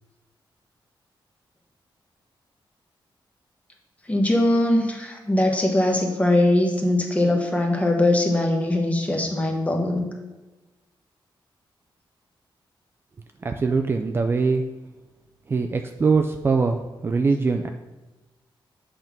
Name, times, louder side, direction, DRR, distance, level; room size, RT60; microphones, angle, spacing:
voice 1, 4.1-10.0, left 1 dB, 15° left, 1 dB, 1.1 m, -21 dB
voice 2, 13.4-14.7 15.5-17.7, right 4 dB, 25° right, 5 dB, 0.3 m, -22 dB
7.8 x 3.6 x 5.9 m, 1.1 s
wide cardioid pair, 155°, 9 cm